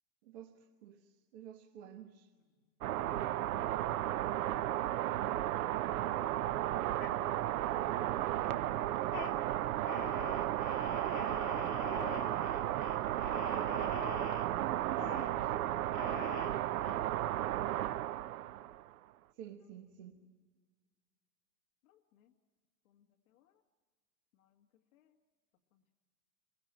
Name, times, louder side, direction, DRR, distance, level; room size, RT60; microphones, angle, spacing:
voice 1, 0.2-2.3 14.6-15.5 19.3-20.2, right 11 dB, 40° right, 1.4 m, -49 dB
sound 1, 2.8-18.9, right 13 dB, 60° right, 0.8 m, -34 dB
voice 2, 6.6-7.5 18.0-18.4 21.8-22.3 22.9-23.6 24.3-24.7 24.9-25.2 25.7-25.9, left 11 dB, 55° left, 1.9 m, -69 dB
sound 2, 7.0-7.7 8.1-8.6 9.0-9.3 9.9-14.5 15.0-15.3 15.9-16.9, left 8 dB, 25° left, 2.6 m, -45 dB
29.0 x 22.5 x 8.8 m
supercardioid pair, 175°, 50 cm